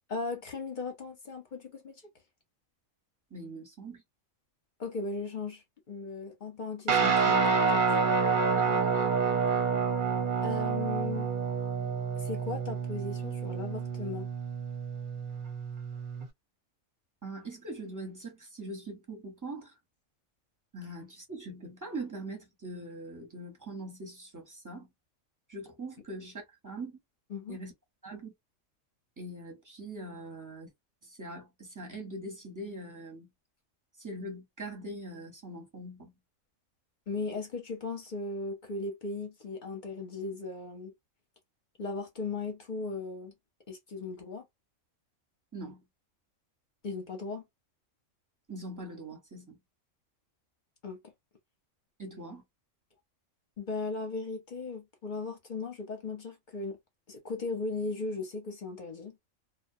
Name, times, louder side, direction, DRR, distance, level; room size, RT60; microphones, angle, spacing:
voice 1, 0.1-2.0 4.8-7.8 10.4-11.3 12.2-14.3 27.3-27.6 37.1-40.9 41.8-43.3 43.7-44.4 46.8-47.4 50.8-51.0 53.6-56.8 57.1-59.2, left 3 dB, 45° left, 0.7 m, -37 dB
voice 2, 3.3-4.0 8.5-9.0 17.2-19.7 20.7-24.9 25.5-27.0 27.5-27.7 28.0-28.3 29.2-30.7 31.0-33.3 34.0-36.1 45.5-45.8 48.5-49.6 52.0-52.4, right 2 dB, 15° right, 0.8 m, -42 dB
Guitar, 6.9-16.3, right 5 dB, 45° right, 0.8 m, -28 dB
2.3 x 2.2 x 2.6 m
omnidirectional pair, 1.4 m